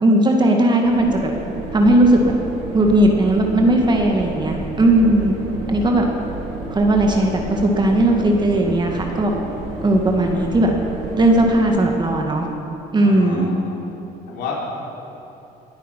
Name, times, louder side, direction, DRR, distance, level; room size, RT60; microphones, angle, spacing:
voice 1, 0.0-1.2 1.7-2.4 2.7-5.3 5.7-6.1 6.7-9.3 9.8-10.7 11.1-12.5 12.9-13.5, right 1 dB, 25° right, 1 dB, 1.7 m, -17 dB
sound 1, 0.8-11.6, right 2 dB, 85° right, 3.7 m, -31 dB
voice 2, 13.0-13.8 14.3-14.5, left 7 dB, 80° left, -4 dB, 4.1 m, -32 dB
21.0 x 9.1 x 5.9 m, 2.8 s
cardioid pair, 110°, 17 cm